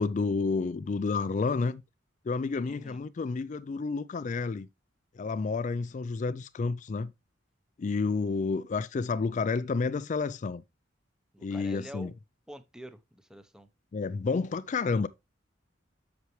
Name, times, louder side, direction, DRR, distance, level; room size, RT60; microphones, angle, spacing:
voice 1, 0.0-1.8 2.3-4.7 5.2-7.1 7.8-10.6 11.4-12.1 13.9-15.1, left 4 dB, 40° left, 0.3 m, -30 dB
voice 2, 2.6-3.0 11.3-12.1 12.5-13.7, equal, 5° right, 0.8 m, -46 dB
8.1 x 6.0 x 3.1 m
head